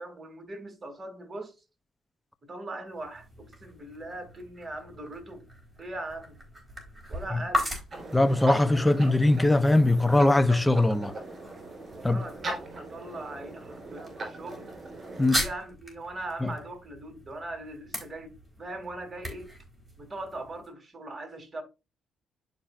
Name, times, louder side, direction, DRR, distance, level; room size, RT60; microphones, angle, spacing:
voice 1, 0.0-1.5 2.5-5.4 5.8-6.4 7.1-7.7 11.9-14.7 15.3-19.5 20.0-21.6, right 2 dB, 25° right, 2.7 m, -40 dB
sound 1, 2.9-20.7, equal, 5° right, 4.2 m, -39 dB
sound 2, 7.9-15.3, right 2 dB, 40° right, 3.7 m, -39 dB
voice 2, 8.1-11.1 12.0-12.2 15.2-15.4 16.4-16.5, left 2 dB, 10° left, 0.6 m, -21 dB
11.5 x 5.3 x 2.5 m
cardioid pair, 90°, 0 cm